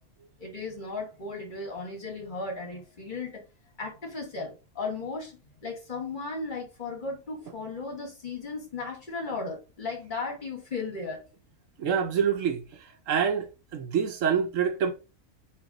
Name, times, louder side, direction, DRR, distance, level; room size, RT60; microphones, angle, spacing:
voice 1, 0.4-3.4 3.8-5.3 5.6-11.2, left 3 dB, 35° left, 1.2 m, -35 dB
voice 2, 11.8-12.7 13.1-14.9, right 7 dB, 70° right, 0.9 m, -26 dB
3.8 x 2.6 x 3.7 m
omnidirectional pair, 1.5 m